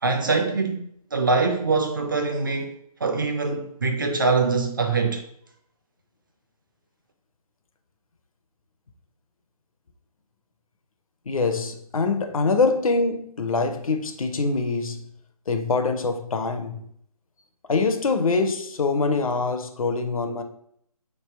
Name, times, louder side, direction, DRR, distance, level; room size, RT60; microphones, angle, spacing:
voice 1, 0.0-2.7 3.0-5.2, right 4 dB, 35° right, 0.4 m, -23 dB
voice 2, 11.3-15.0 15.5-16.8 17.7-20.4, left 4 dB, 60° left, 0.6 m, -24 dB
3.3 x 2.8 x 4.3 m
figure-of-eight pair, 155°, 20 cm